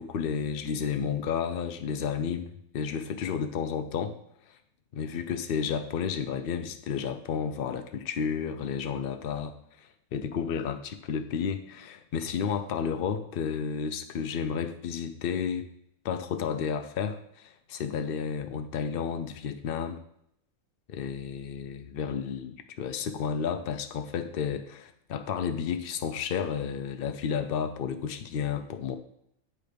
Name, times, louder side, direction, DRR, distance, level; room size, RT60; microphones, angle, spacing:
voice 1, 0.0-4.2 4.9-9.5 10.1-15.7 16.0-20.0 20.9-29.0, left 7 dB, 80° left, 8 dB, 0.5 m, -32 dB
8.2 x 3.9 x 5.1 m, 0.73 s
omnidirectional pair, 1.5 m